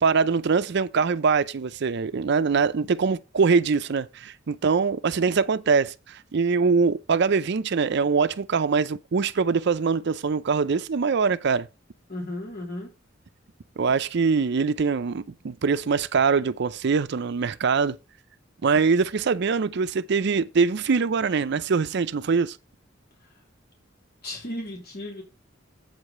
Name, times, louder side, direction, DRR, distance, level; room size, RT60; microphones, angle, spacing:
voice 1, 0.0-11.7 13.8-18.0 18.6-22.6, right 5 dB, 60° right, 0.5 m, -23 dB
voice 2, 12.1-12.9 24.2-25.2, left 1 dB, 55° left, 3.1 m, -34 dB
8.0 x 4.9 x 6.4 m
head